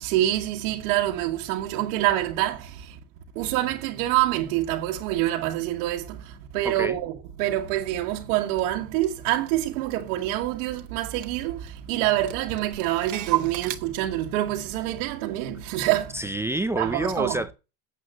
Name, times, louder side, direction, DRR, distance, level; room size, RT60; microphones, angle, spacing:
voice 1, 0.0-2.6 3.4-6.2 6.5-11.6 11.9-16.1 16.8-17.4, right 14 dB, 80° right, 1.7 m, -26 dB
voice 2, 6.6-7.0 16.1-17.5, right 1 dB, 5° right, 0.5 m, -28 dB
Clock, 8.6-8.7 9.0-10.5 10.8-10.9 11.1-11.8 12.1-13.8, right 17 dB, 45° right, 1.3 m, -32 dB
9.4 x 7.9 x 7.6 m
supercardioid pair, 125°, 43 cm